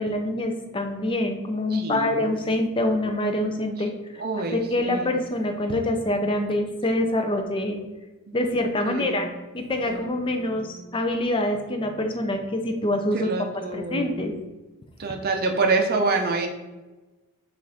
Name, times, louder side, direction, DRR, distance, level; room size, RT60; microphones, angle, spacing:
voice 1, 0.0-4.2 4.5-7.8 8.3-9.3 9.5-13.3 13.7-14.3, left 1 dB, 25° left, 5 dB, 0.5 m, -25 dB
voice 2, 1.7-2.3 4.2-5.1 8.9-9.3 9.9-10.9 13.2-14.3 15.0-16.5, right 3 dB, 45° right, 3 dB, 0.6 m, -27 dB
6.1 x 2.5 x 3.4 m, 1.1 s
head